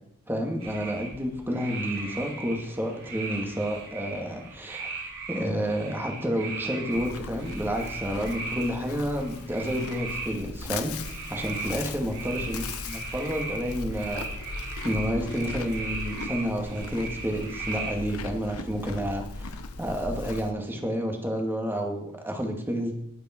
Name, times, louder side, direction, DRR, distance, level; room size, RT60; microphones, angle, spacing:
voice 1, 0.3-4.9 5.3-10.9 11.3-14.3 14.8-19.5 19.8-22.9, equal, 10° right, 2 dB, 2.2 m, -30 dB
sound 1, 0.6-18.0, right 3 dB, 65° right, 5.6 m, -38 dB
Livestock farm animals working animals, 6.9-20.5, left 3 dB, 85° left, 1.1 m, -38 dB
21.0 x 8.9 x 4.6 m, 0.80 s
head